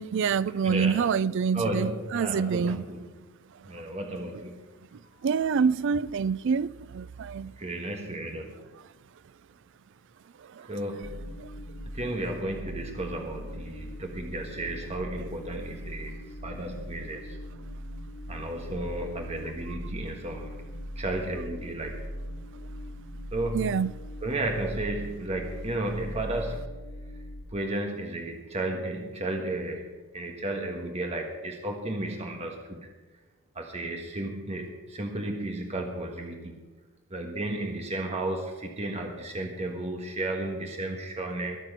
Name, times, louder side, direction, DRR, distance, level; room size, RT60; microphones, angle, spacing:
voice 1, 0.0-2.8 5.2-7.5 15.5-15.6 23.5-23.9, right 6 dB, 60° right, 0.4 m, -26 dB
voice 2, 0.6-1.0 1.5-3.2 3.6-4.6 5.1-5.2 7.6-8.7 10.7-11.4 11.9-17.4 18.3-20.6 20.9-22.0 23.3-23.8 24.2-26.7 27.5-32.9 33.5-36.7 37.1-41.6, right 2 dB, 30° right, 1.5 m, -33 dB
sound 1, 11.0-27.5, equal, 60° left, 1.6 m, -40 dB
21.5 x 7.5 x 6.0 m
head